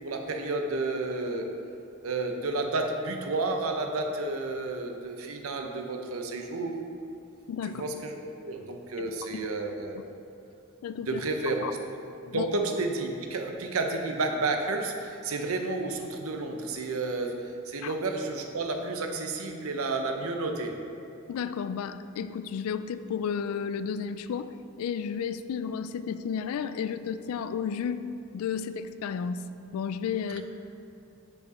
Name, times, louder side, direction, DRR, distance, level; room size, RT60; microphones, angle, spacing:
voice 1, 0.0-1.5 2.0-6.8 7.7-10.0 11.0-11.8 12.2-17.4 17.7-20.8 30.4-30.5, right 3 dB, 80° right, 4 dB, 0.7 m, -31 dB
voice 2, 7.5-7.8 9.0-9.5 10.8-11.2 11.6-11.7 12.3-12.5 17.8-17.9 21.3-28.0 28.3-29.5 29.7-30.4, left 7 dB, 85° left, 14 dB, 0.3 m, -32 dB
5.3 x 4.7 x 5.4 m, 2.7 s
head